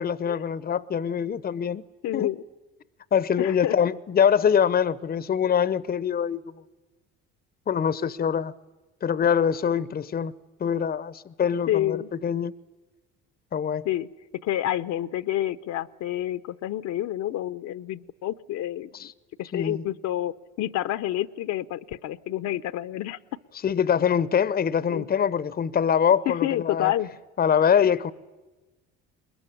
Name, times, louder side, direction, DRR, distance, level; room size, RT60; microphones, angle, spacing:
voice 1, 0.0-1.8 2.1-2.3 3.1-6.4 7.7-8.5 9.0-10.3 10.6-12.5 13.5-13.8 18.9-19.1 19.5-19.8 23.6-26.9 27.4-28.1, left 8 dB, 30° left, 0.7 m, -24 dB
voice 2, 2.0-2.4 3.4-3.8 11.7-12.1 13.8-14.1 14.4-19.1 19.4-23.2 24.9-25.1 26.3-27.1, left 13 dB, 60° left, 0.8 m, -28 dB
21.5 x 21.0 x 10.0 m
hypercardioid pair, 70°, 31 cm